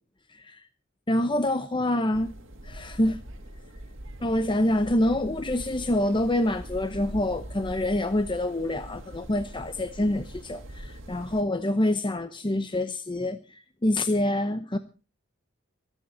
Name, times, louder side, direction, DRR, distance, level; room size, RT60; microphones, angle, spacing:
voice 1, 0.3-0.6 1.1-2.3 2.6-3.2 4.2-14.8, left 1 dB, 25° left, 0.8 m, -26 dB
sound 1, 2.1-11.4, right 1 dB, 70° right, 2.2 m, -42 dB
25.0 x 8.8 x 4.4 m
head